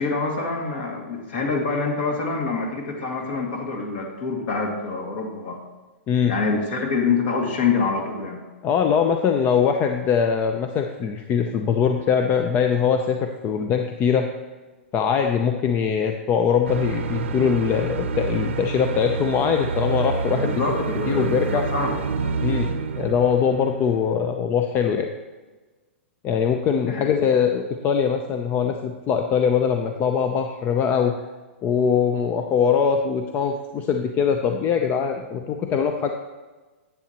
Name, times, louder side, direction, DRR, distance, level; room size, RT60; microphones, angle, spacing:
voice 1, 0.0-5.6 6.3-8.4 20.3-22.0 26.9-27.1, left 4 dB, 55° left, 1 dB, 2.2 m, -26 dB
voice 2, 6.1-6.4 8.6-14.3 14.9-20.5 21.1-21.6 22.4-22.7 23.0-25.1 26.2-31.1 31.6-36.1, left 7 dB, 30° left, 5 dB, 0.6 m, -22 dB
sound 1, 16.7-24.2, right 4 dB, 70° right, 0.7 m, -28 dB
10.5 x 8.3 x 3.0 m, 1.3 s
hypercardioid pair, 125°, 7 cm